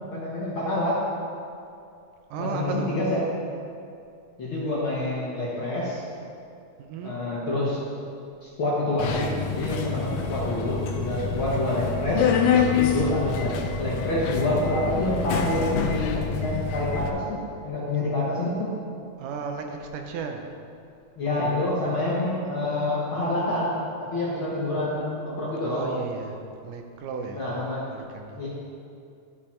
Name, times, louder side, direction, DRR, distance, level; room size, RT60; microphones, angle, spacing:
voice 1, 0.1-1.0 2.4-3.2 4.4-6.0 7.0-8.0 8.4-12.3 12.9-18.7 21.2-23.8 24.1-25.9 27.4-27.8 28.3-28.5, left 1 dB, 55° left, -7 dB, 1.5 m, -27 dB
voice 2, 2.3-2.9 6.8-7.2 19.2-20.5 25.6-27.4 27.9-28.4, right 5 dB, 80° right, 4 dB, 2.2 m, -34 dB
Subway metro underground, 9.0-17.1, left 6 dB, 85° left, 2.4 m, -26 dB
11.5 x 6.7 x 4.4 m, 2.5 s
omnidirectional pair, 3.9 m